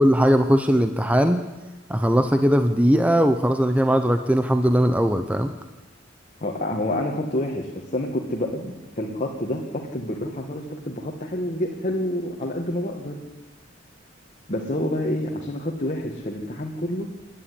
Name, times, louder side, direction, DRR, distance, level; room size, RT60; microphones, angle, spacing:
voice 1, 0.0-1.4 1.9-5.5, equal, 5° right, 8 dB, 0.8 m, -19 dB
voice 2, 6.4-13.2 14.5-17.1, left 1 dB, 35° left, 0 dB, 1.9 m, -28 dB
27.0 x 10.5 x 9.9 m, 1.1 s
head